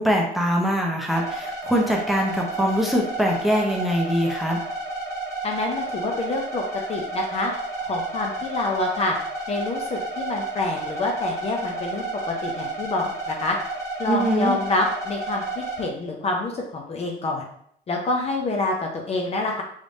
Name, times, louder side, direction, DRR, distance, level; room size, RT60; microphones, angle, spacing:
voice 1, 0.0-4.6 14.1-14.6, equal, ahead, -1 dB, 0.8 m, -23 dB
sound 1, 1.1-15.8, right 2 dB, 20° left, 1.3 m, -31 dB
voice 2, 5.4-6.6 6.9-7.5 7.8-9.1 9.5-13.6 14.0-17.5 17.9-19.6, left 2 dB, 40° left, 0 dB, 0.6 m, -27 dB
3.4 x 3.2 x 2.7 m, 0.68 s
cardioid pair, 110°, 17 cm